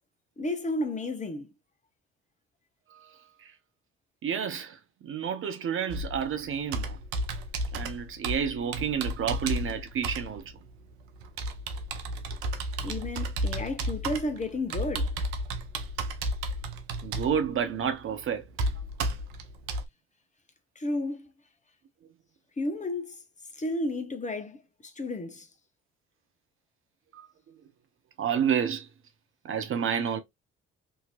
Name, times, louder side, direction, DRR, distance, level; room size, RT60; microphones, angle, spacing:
voice 1, 0.4-1.5 12.8-15.2 20.8-21.3 22.6-23.2 23.6-25.5, left 2 dB, 25° left, 0.9 m, -32 dB
voice 2, 2.9-3.5 4.2-7.0 7.7-10.5 17.0-18.4 27.1-27.3 28.2-28.9 29.4-30.2, right 8 dB, 40° right, 0.6 m, -30 dB
Computer keyboard, 5.9-19.9, right 1 dB, 80° right, 0.6 m, -33 dB
2.8 x 2.8 x 2.4 m
hypercardioid pair, 55°, 31 cm